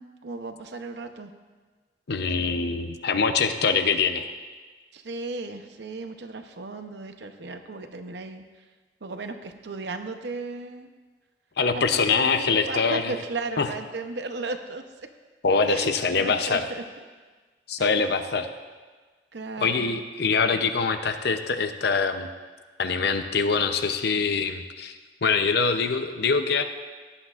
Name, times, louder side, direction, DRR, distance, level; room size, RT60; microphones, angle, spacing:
voice 1, 0.0-1.3 4.9-8.4 9.0-10.9 11.7-14.8 15.7-16.8 17.8-18.0 19.3-20.0, right 3 dB, 65° right, 7 dB, 0.8 m, -35 dB
voice 2, 2.1-4.3 11.6-13.1 13.6-13.7 15.4-16.6 17.7-18.5 19.6-22.3 22.8-24.9 25.2-26.6, left 5 dB, 60° left, 8 dB, 0.7 m, -24 dB
17.0 x 10.5 x 2.5 m, 1.4 s
head